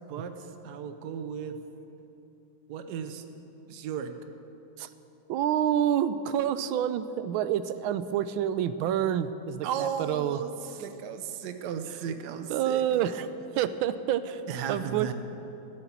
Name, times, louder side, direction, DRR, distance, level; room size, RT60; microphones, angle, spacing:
voice 1, 0.1-1.6 2.7-3.2 3.7-4.1 9.6-12.8 14.5-15.1, right 7 dB, 65° right, 8 dB, 1.2 m, -35 dB
voice 2, 5.3-10.4 12.5-13.3 13.5-14.4 14.7-15.1, right 10 dB, 85° right, 13 dB, 1.4 m, -28 dB
13.5 x 7.1 x 8.3 m, 2.9 s
omnidirectional pair, 2.2 m